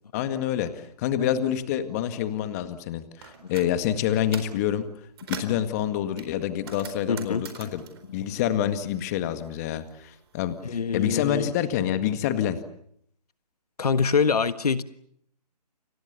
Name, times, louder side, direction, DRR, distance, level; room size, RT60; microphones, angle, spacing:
voice 1, 0.1-4.9 5.3-7.8 8.1-12.6, left 10 dB, 25° left, 10 dB, 1.9 m, -27 dB
sound 1, 3.2-3.7 4.1-4.6 5.0-5.6 6.2-9.1 9.4-10.5, right 7 dB, 35° right, 4.2 m, -42 dB
voice 2, 7.1-7.4 10.6-11.5 13.8-14.8, left 5 dB, 65° left, 12 dB, 1.5 m, -24 dB
30.0 x 25.0 x 7.0 m, 0.69 s
hypercardioid pair, 155°, 21 cm